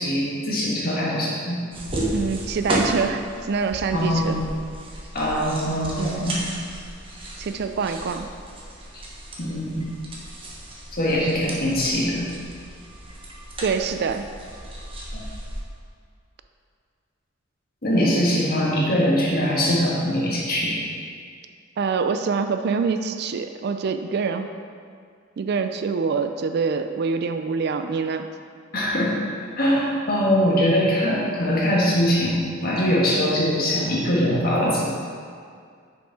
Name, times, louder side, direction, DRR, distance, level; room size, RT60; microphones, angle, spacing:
voice 1, 0.0-1.6 3.9-4.4 5.1-6.4 8.9-9.0 9.4-9.9 10.9-12.3 17.8-20.8 28.7-29.1 29.5-32.3 32.6-34.9, equal, 50° left, -5 dB, 1.7 m, -22 dB
sound 1, 1.7-15.6, right 1 dB, 30° right, 1.1 m, -33 dB
voice 2, 2.1-4.4 6.0-6.3 7.4-8.3 13.6-14.3 21.8-24.5 25.4-28.3, right 5 dB, 55° right, 8 dB, 0.4 m, -25 dB
6.5 x 5.3 x 4.8 m, 2.2 s
head